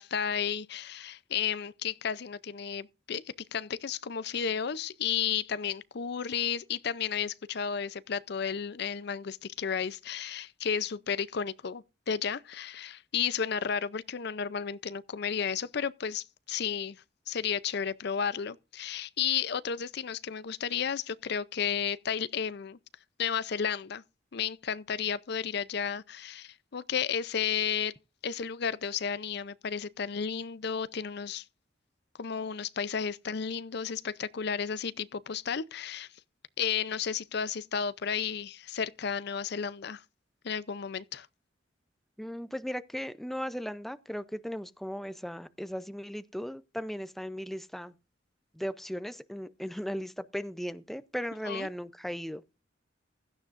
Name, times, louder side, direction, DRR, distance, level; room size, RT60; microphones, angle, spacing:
voice 1, 0.0-3.2 3.5-22.8 23.2-24.0 24.3-27.9 28.2-31.4 32.2-36.1 36.6-40.0 40.4-41.3 51.4-51.7, left 7 dB, 60° left, 0.5 m, -33 dB
voice 2, 42.2-47.9 48.5-52.6, equal, ahead, 0.5 m, -37 dB
16.0 x 12.5 x 2.5 m
head